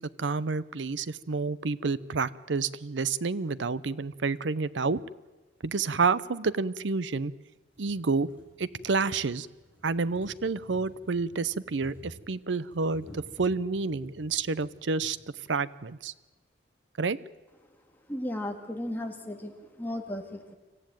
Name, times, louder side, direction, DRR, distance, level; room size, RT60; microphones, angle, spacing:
voice 1, 0.0-5.0 5.6-7.3 7.8-8.3 8.6-9.5 9.8-15.2 15.5-16.1 17.0-17.2, right 4 dB, 80° right, 18 dB, 0.7 m, -29 dB
sound 1, 5.6-5.7 6.6-6.7 7.2-7.3 7.6-15.1 16.1-16.2 16.4-16.5, equal, 10° right, 6.8 m, -53 dB
voice 2, 18.1-20.5, left 1 dB, 10° left, 3 dB, 2.1 m, -35 dB
25.5 x 14.5 x 9.1 m, 1.2 s
head